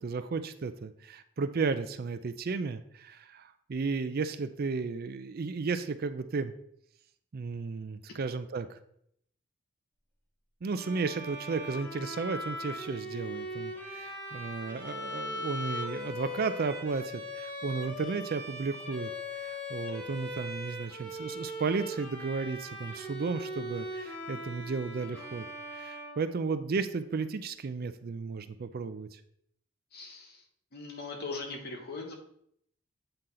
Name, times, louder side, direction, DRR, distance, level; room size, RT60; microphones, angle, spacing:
voice 1, 0.0-6.5 7.3-8.8 10.6-25.5 25.7-29.2, right 4 dB, 50° right, 11 dB, 0.4 m, -34 dB
Bowed string instrument, 10.7-26.8, equal, 10° left, 1.9 m, -40 dB
voice 2, 29.9-30.4 30.7-32.1, left 3 dB, 50° left, 2 dB, 1.3 m, -40 dB
7.9 x 4.3 x 3.8 m, 0.69 s
head